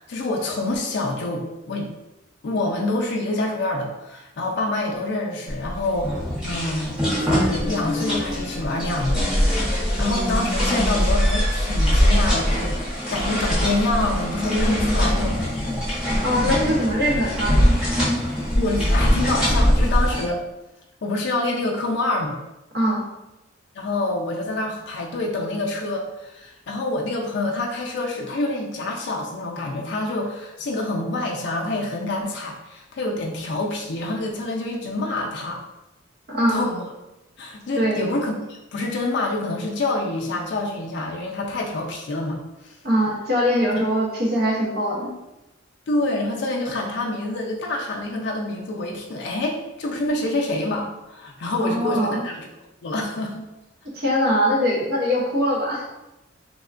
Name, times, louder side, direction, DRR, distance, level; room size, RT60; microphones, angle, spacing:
voice 1, 0.0-1.9 2.4-6.1 6.4-12.8 13.1-15.8 18.5-20.4 21.0-22.4 23.7-35.6 36.4-36.8 37.4-42.8 43.7-43.9 45.9-52.5 52.8-53.5, left 2 dB, 60° left, -1 dB, 0.4 m, -27 dB
sound 1, 5.5-20.2, equal, 5° right, 0.8 m, -22 dB
voice 2, 16.2-17.8 22.7-23.1 36.3-36.6 37.8-38.0 42.8-45.1 51.6-52.2 53.9-55.9, equal, 55° right, -3 dB, 0.7 m, -22 dB
3.3 x 2.1 x 2.4 m, 0.96 s
head